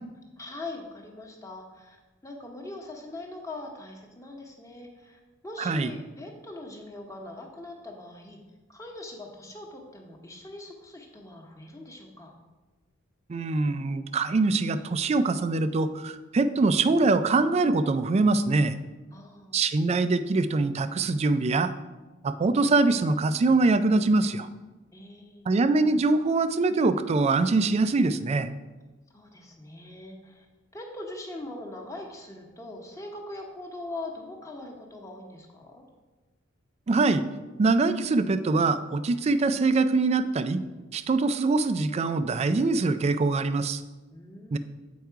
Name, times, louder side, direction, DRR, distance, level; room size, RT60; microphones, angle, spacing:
voice 1, 0.4-2.0 2.2-8.4 8.7-12.3 19.1-19.6 24.9-25.5 29.1-30.5 30.7-35.8 44.1-44.6, left 2 dB, 15° left, 1 dB, 1.0 m, -41 dB
voice 2, 5.6-5.9 13.3-18.7 19.5-21.7 22.2-24.5 25.5-28.5 36.9-37.2 37.6-40.6 40.9-43.8 44.5-44.6, right 3 dB, 30° right, 12 dB, 0.3 m, -23 dB
7.9 x 4.7 x 4.6 m, 1.2 s
head